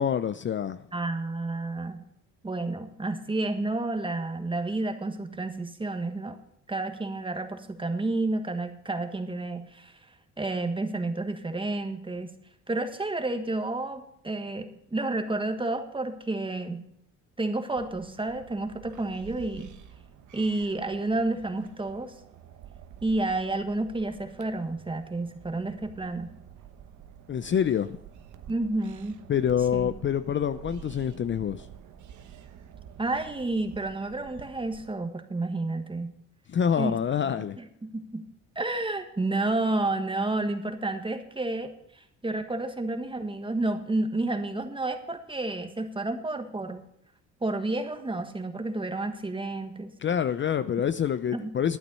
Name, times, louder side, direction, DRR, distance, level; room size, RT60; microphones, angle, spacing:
voice 1, 0.0-0.8 27.3-28.0 29.3-31.7 36.5-37.6 50.0-51.8, left 8 dB, 40° left, 0.5 m, -26 dB
voice 2, 0.9-2.0 2.4-6.4 6.7-9.9 10.4-12.3 12.7-16.8 17.4-19.7 20.3-22.1 23.0-26.3 28.5-29.2 29.7-30.0 33.0-36.1 36.8-37.0 37.2-38.2 38.5-46.8 47.4-49.9 51.3-51.6, right 2 dB, 15° right, 1.5 m, -30 dB
sound 1, 17.8-34.9, right 9 dB, 75° right, 1.1 m, -49 dB
11.5 x 9.2 x 5.5 m
cardioid pair, 90°, 30 cm